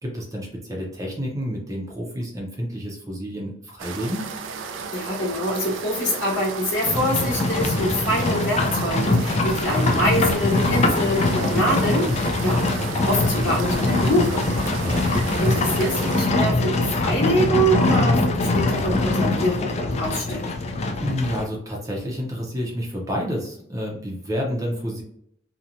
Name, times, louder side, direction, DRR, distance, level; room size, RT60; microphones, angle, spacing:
voice 1, 0.0-4.3 14.8-15.1 21.0-25.0, equal, 20° right, -2 dB, 0.5 m, -29 dB
sound 1, 3.8-16.3, right 5 dB, 80° right, 0.3 m, -34 dB
voice 2, 4.9-12.6 13.0-14.5 15.4-20.5, equal, 75° left, -6 dB, 1.1 m, -25 dB
Livestock farm animals working animals, 6.9-21.4, left 2 dB, 35° left, 0.4 m, -22 dB
2.8 x 2.1 x 2.5 m, 0.69 s
head